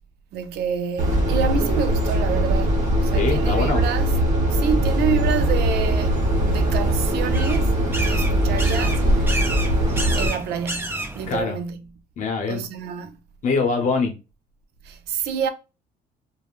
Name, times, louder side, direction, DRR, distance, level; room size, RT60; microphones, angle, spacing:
voice 1, 0.3-4.1 4.5-7.7 8.0-9.1 10.2-11.9 12.5-13.2 14.8-15.5, right 7 dB, 75° right, 0.5 m, -28 dB
sound 1, 1.0-10.3, right 1 dB, 45° right, 0.9 m, -21 dB
voice 2, 3.1-3.8 11.3-11.6 12.2-12.6 13.4-14.1, left 4 dB, 45° left, 0.7 m, -23 dB
sound 2, 5.3-11.4, right 1 dB, 15° right, 0.6 m, -32 dB
3.4 x 2.1 x 2.4 m
cardioid pair, 110°, 17 cm